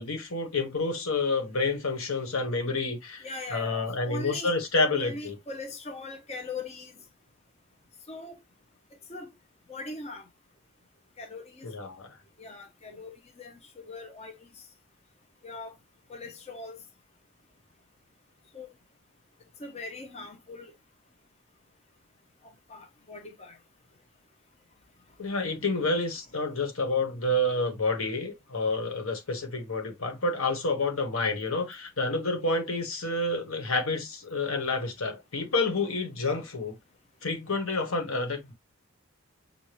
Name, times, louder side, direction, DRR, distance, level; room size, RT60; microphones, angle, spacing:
voice 1, 0.0-5.4 11.6-12.2 25.2-36.8 37.2-38.5, left 2 dB, 80° left, 1.4 m, -29 dB
voice 2, 3.2-4.5 4.9-6.9 8.1-8.4 9.1-9.3 9.7-10.3 11.2-11.7 12.4-14.5 15.4-15.7 16.1-16.8 18.5-18.7 19.6-20.7 22.7-23.6, left 3 dB, 30° left, 0.7 m, -40 dB
6.7 x 2.5 x 3.1 m
head